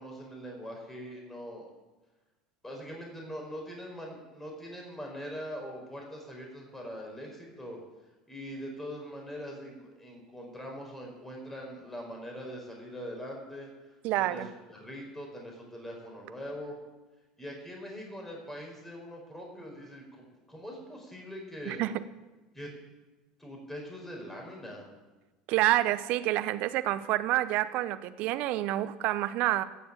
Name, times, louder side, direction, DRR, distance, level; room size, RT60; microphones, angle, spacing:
voice 1, 0.0-1.7 2.6-7.8 8.3-16.8 17.4-21.8 22.5-22.7 23.4-24.9, equal, 10° left, 0 dB, 4.8 m, -42 dB
voice 2, 14.0-14.5 21.7-21.9 25.5-29.6, right 15 dB, 60° right, 13 dB, 0.8 m, -28 dB
17.0 x 7.0 x 7.6 m, 1.1 s
hypercardioid pair, 75°, 3 cm